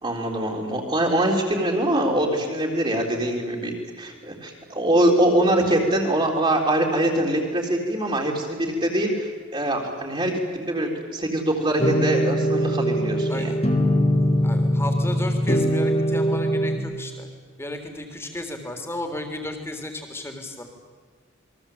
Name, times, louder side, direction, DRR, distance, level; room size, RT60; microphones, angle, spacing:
voice 1, 0.0-13.5, right 1 dB, 25° right, -2 dB, 4.0 m, -23 dB
sound 1, 11.8-16.8, equal, 30° left, 2.7 m, -22 dB
voice 2, 14.4-17.3 17.6-20.6, left 1 dB, 10° left, 5 dB, 3.6 m, -33 dB
28.5 x 22.5 x 8.9 m, 1.5 s
head